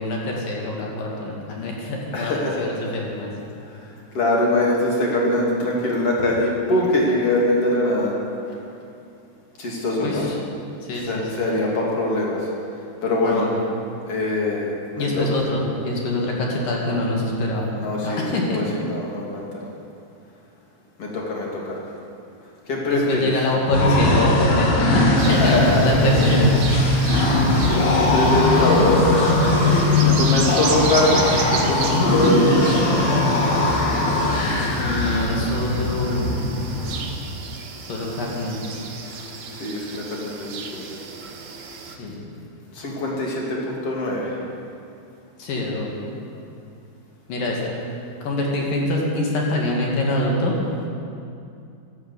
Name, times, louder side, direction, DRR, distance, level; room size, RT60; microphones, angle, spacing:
voice 1, 0.0-3.3 10.0-10.4 10.8-11.6 13.2-13.6 15.0-17.7 18.0-18.6 22.9-26.8 30.0-30.2 34.8-36.3 37.4-37.5 37.9-38.6 41.9-42.2 45.4-46.0 47.3-47.6 48.2-50.5, left 1 dB, 55° left, -2 dB, 3.4 m, -25 dB
voice 2, 2.1-2.7 3.7-3.8 4.1-8.1 9.6-10.2 11.1-12.5 13.0-13.5 14.1-15.2 17.8-18.2 18.5-19.6 21.0-21.8 22.7-23.3 25.4-25.8 28.0-29.3 30.1-32.8 39.0-39.3 39.6-40.9 42.7-44.4, left 1 dB, 40° left, -3 dB, 2.9 m, -23 dB
sound 1, 23.7-37.0, left 2 dB, 75° left, 4.5 m, -19 dB
sound 2, 25.2-42.0, right 5 dB, 65° right, 2.1 m, -34 dB
13.0 x 12.0 x 8.4 m, 2.6 s
omnidirectional pair, 5.3 m